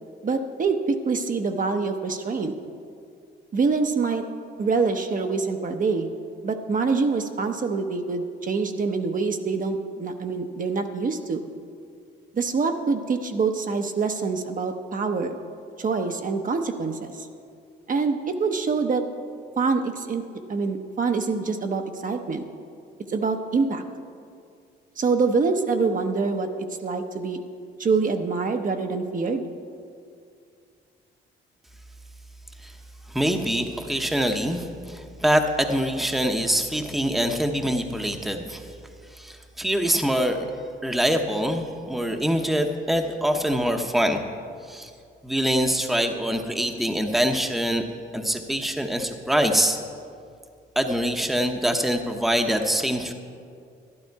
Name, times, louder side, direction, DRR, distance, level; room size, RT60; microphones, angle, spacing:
voice 1, 0.2-2.5 3.5-4.2 4.6-6.1 6.4-11.5 12.3-15.3 15.8-17.3 17.9-19.0 19.6-20.2 20.5-22.4 23.1-23.8 25.0-27.4 27.8-29.4, right 4 dB, 40° right, 5 dB, 0.8 m, -25 dB
voice 2, 33.1-38.7 39.1-40.5 40.8-44.2 44.7-44.9 45.2-47.8 48.1-49.8 50.8-53.1, equal, ahead, 4 dB, 0.9 m, -24 dB
12.0 x 11.5 x 4.6 m, 2.3 s
cardioid pair, 90°, 20 cm